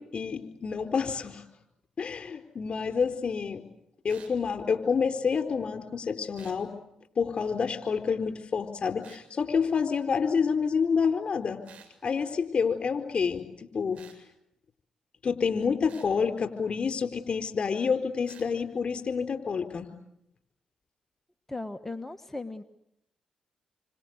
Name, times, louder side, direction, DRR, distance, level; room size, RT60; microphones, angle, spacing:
voice 1, 0.0-1.5 2.0-3.6 4.0-6.7 7.2-11.6 12.0-14.0 15.2-19.9, left 6 dB, 50° left, 6 dB, 4.5 m, -28 dB
sound 1, 4.1-4.4 6.3-6.6 9.0-9.3 11.6-11.9 13.9-14.2 15.9-16.1 18.2-18.5, right 7 dB, 65° right, 7.0 m, -52 dB
voice 2, 21.5-22.6, left 2 dB, 15° left, 8 dB, 1.5 m, -37 dB
28.0 x 25.5 x 8.2 m, 0.81 s
hypercardioid pair, 45°, 2 cm